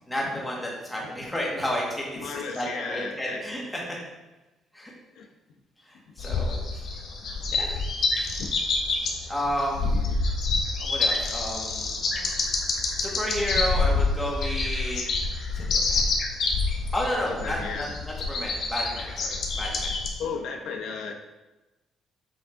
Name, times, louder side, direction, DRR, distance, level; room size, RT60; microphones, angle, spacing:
voice 1, 0.1-3.8 4.7-4.9 5.9-6.8 7.6-7.7 8.2-8.3 9.3-9.8 10.8-11.9 13.0-15.1 15.6-16.0 16.9-19.9, equal, 5° left, -3 dB, 1.8 m, -31 dB
voice 2, 2.2-3.4 5.1-5.3 8.4-8.5 9.9-10.0 17.3-17.9 20.2-21.1, left 5 dB, 90° left, 2 dB, 0.9 m, -34 dB
sound 1, 6.2-20.1, left 3 dB, 55° left, 1.2 m, -27 dB
7.8 x 6.2 x 3.7 m, 1.1 s
cardioid pair, 165°, 0 cm